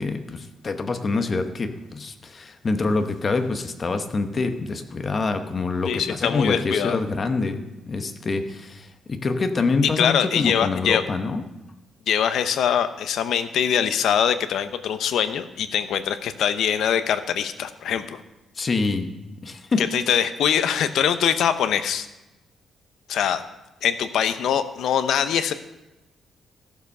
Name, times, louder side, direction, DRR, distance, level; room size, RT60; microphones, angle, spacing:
voice 1, 0.0-11.4 18.6-19.1 19.4-19.9, left 3 dB, 35° left, 7 dB, 1.0 m, -26 dB
voice 2, 5.9-7.0 9.8-11.0 12.1-18.2 19.8-22.1 23.1-23.4 23.8-25.5, left 8 dB, 75° left, 11 dB, 0.7 m, -23 dB
14.5 x 7.1 x 5.5 m, 1.0 s
cardioid pair, 130°, 0 cm